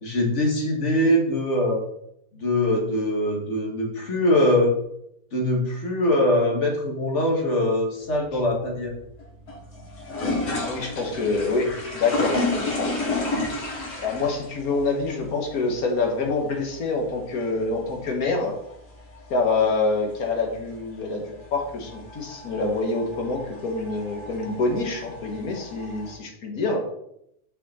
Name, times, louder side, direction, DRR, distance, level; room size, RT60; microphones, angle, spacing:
voice 1, 0.0-1.8 2.3-4.7 5.3-8.9, left 1 dB, 50° left, 0 dB, 1.8 m, -22 dB
sound 1, 8.0-26.1, left 2 dB, 90° left, 2.5 m, -33 dB
voice 2, 10.6-12.9 14.0-18.6 19.3-26.9, left 3 dB, 70° left, 2 dB, 1.8 m, -26 dB
6.0 x 5.6 x 4.2 m, 0.76 s
omnidirectional pair, 1.6 m